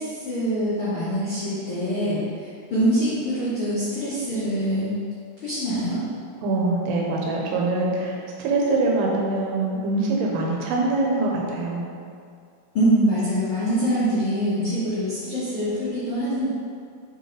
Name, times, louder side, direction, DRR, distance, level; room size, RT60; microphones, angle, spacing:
voice 1, 0.0-4.9 5.4-6.0 12.7-16.5, equal, 60° left, -12 dB, 1.4 m, -24 dB
voice 2, 6.4-11.8, right 2 dB, 85° right, -2 dB, 3.1 m, -24 dB
7.9 x 4.9 x 3.3 m, 2.3 s
omnidirectional pair, 4.6 m